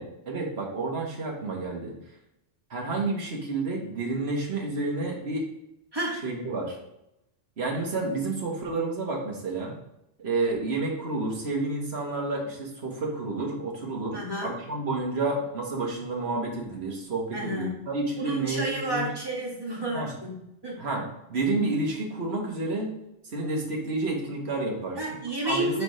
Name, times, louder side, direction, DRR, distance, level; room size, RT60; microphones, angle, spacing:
voice 1, 0.0-1.9 2.7-5.4 6.2-6.8 7.6-9.7 10.2-19.1 19.9-20.1 20.8-22.9 23.3-25.0 25.4-25.8, right 2 dB, 65° right, -1 dB, 1.7 m, -30 dB
voice 2, 14.1-14.5 17.3-17.8 18.2-20.9 25.0-25.8, right 1 dB, 20° right, -3 dB, 1.7 m, -31 dB
5.0 x 4.8 x 4.9 m, 0.84 s
omnidirectional pair, 1.2 m